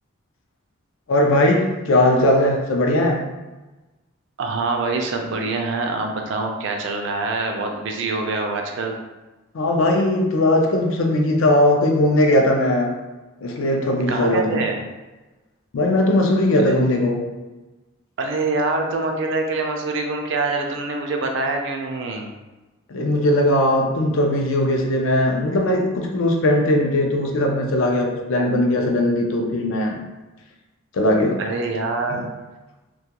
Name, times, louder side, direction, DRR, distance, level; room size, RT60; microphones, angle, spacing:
voice 1, 1.1-3.2 9.5-12.9 13.4-14.6 15.7-17.2 22.9-30.0 30.9-31.4, left 1 dB, 70° left, 2 dB, 0.4 m, -19 dB
voice 2, 4.4-9.0 14.1-14.8 16.6-17.0 18.2-22.3 31.4-32.3, right 3 dB, 60° right, 2 dB, 0.4 m, -25 dB
2.3 x 2.2 x 2.8 m, 1.1 s
head